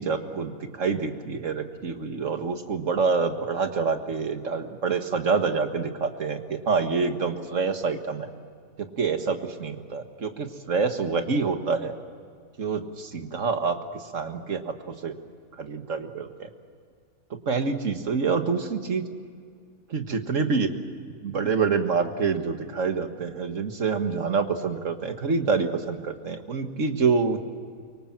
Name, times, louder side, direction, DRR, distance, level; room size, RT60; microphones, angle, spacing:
voice 1, 0.0-8.3 8.8-11.9 12.6-15.2 15.6-16.5 17.5-19.0 19.9-20.7 21.2-27.4, right 5 dB, 55° right, 7 dB, 1.9 m, -27 dB
24.5 x 24.0 x 7.4 m, 2.1 s
omnidirectional pair, 1.6 m